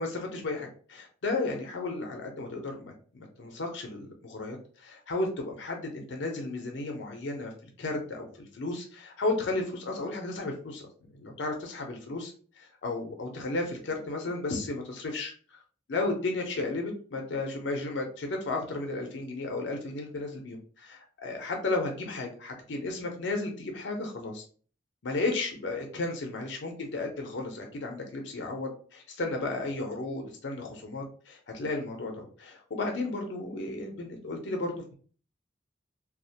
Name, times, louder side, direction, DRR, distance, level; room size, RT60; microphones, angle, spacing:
voice 1, 0.0-7.5 7.8-10.9 11.1-12.3 12.6-15.6 15.9-24.4 25.0-34.9, left 2 dB, 75° left, 2 dB, 0.5 m, -34 dB
2.3 x 2.1 x 2.7 m, 0.42 s
head